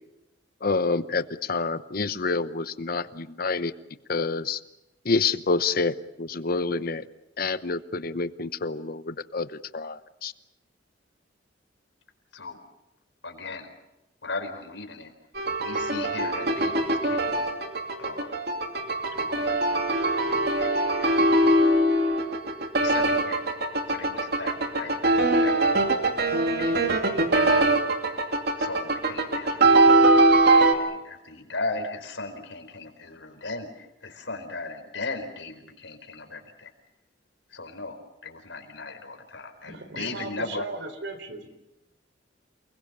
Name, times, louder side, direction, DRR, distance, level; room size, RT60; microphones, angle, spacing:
voice 1, 0.6-3.7 4.1-4.6 5.0-7.1 7.4-10.3, left 4 dB, 55° left, 13 dB, 0.9 m, -28 dB
voice 2, 13.2-13.7 14.2-15.1 15.6-17.5 18.0-18.4 19.0-19.7 20.0-21.4 22.8-23.5 23.9-26.0 26.6-27.7 28.6-29.8 30.7-36.7 37.5-40.7, left 3 dB, 80° left, 6 dB, 4.5 m, -37 dB
sound 1, 15.3-30.7, right 2 dB, 60° right, 2.6 m, -22 dB
voice 3, 39.6-41.5, right 2 dB, 80° right, 9 dB, 4.2 m, -37 dB
29.0 x 21.5 x 6.8 m, 0.94 s
head